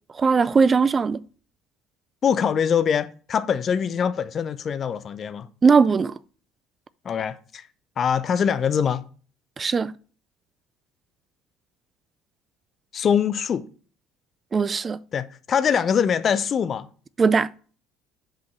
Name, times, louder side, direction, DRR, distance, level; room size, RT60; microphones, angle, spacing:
voice 1, 0.2-1.2 5.6-6.1 9.6-9.9 14.5-15.0 17.2-17.5, right 5 dB, 30° right, 0.4 m, -19 dB
voice 2, 2.2-5.5 7.0-7.6 8.0-9.0 12.9-13.6 15.1-16.8, left 7 dB, 40° left, 0.6 m, -23 dB
5.5 x 5.1 x 5.9 m
figure-of-eight pair, 60°, 0 cm